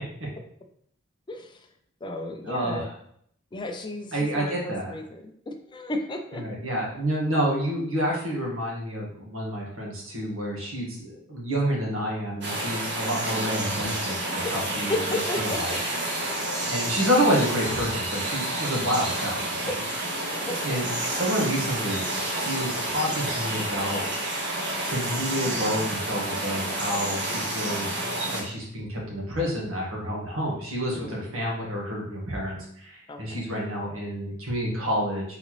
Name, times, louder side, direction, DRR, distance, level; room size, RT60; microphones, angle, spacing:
voice 1, 1.3-1.7 2.0-2.9 3.5-6.4 14.9-15.6 20.5-20.6 30.9-31.3 33.1-33.5, left 2 dB, 25° left, 5 dB, 0.4 m, -33 dB
voice 2, 2.4-2.9 4.1-5.0 6.3-15.0 15.4-15.8 16.7-19.7 20.6-24.1 24.8-28.0 28.2-35.2, equal, 80° right, -3 dB, 1.5 m, -29 dB
sound 1, 12.4-28.4, right 1 dB, 60° right, 1.3 m, -29 dB
4.0 x 3.9 x 3.1 m, 0.67 s
head